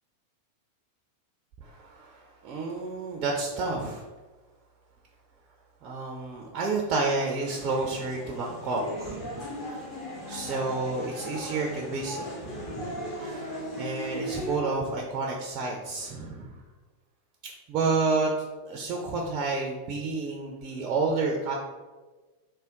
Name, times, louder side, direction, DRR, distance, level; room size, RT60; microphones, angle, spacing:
voice 1, 1.6-4.0 5.8-9.8 10.3-13.5 13.8-16.5 17.7-18.3 18.6-21.5, right 3 dB, 35° right, 0 dB, 0.4 m, -30 dB
sound 1, 7.4-14.6, equal, 40° left, 1.2 m, -37 dB
3.4 x 2.2 x 3.7 m, 1.3 s
figure-of-eight pair, 90°, 0 cm